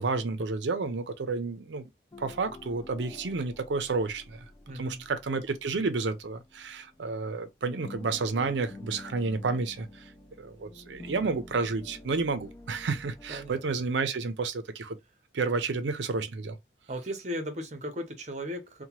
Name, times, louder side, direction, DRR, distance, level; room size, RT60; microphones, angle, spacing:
voice 1, 0.0-1.9 2.2-4.4 4.7-10.0 10.4-15.0 15.3-16.6, right 4 dB, 80° right, 0.5 m, -31 dB
sound 1, 2.1-7.4 7.7-13.9, left 2 dB, 20° left, 0.4 m, -49 dB
voice 2, 4.7-5.1 13.3-13.6 16.9-18.8, equal, 40° right, 0.7 m, -36 dB
2.8 x 2.2 x 2.9 m
head